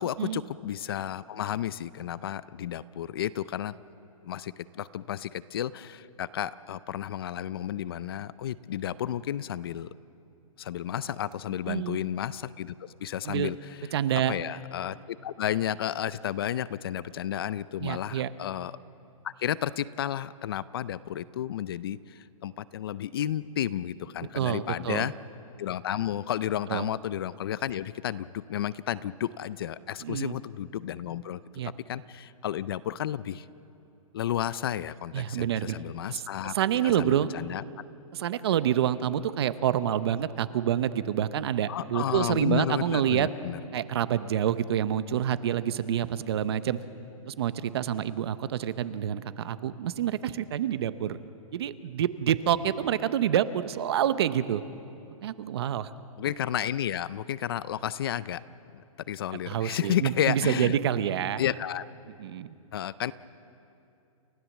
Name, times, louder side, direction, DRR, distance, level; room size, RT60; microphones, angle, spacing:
voice 1, 0.0-3.7 4.2-9.9 10.6-13.8 14.3-18.7 19.2-25.1 25.6-33.5 34.1-36.5 36.8-37.6 41.7-43.6 56.2-58.4 58.7-58.8 59.1-60.8 61.4-61.8 62.7-63.1, left 11 dB, 40° left, 18 dB, 0.4 m, -32 dB
voice 2, 13.9-14.3 17.8-18.3 24.4-25.1 26.7-26.9 30.0-30.4 31.6-31.7 35.1-35.8 36.1-36.2 36.5-37.3 38.1-43.3 43.7-46.8 47.3-51.2 51.5-54.6 55.2-55.9 59.5-61.4 62.2-62.5, right 10 dB, 45° right, 14 dB, 0.8 m, -27 dB
29.5 x 14.5 x 7.3 m, 2.7 s
hypercardioid pair, 165°, 18 cm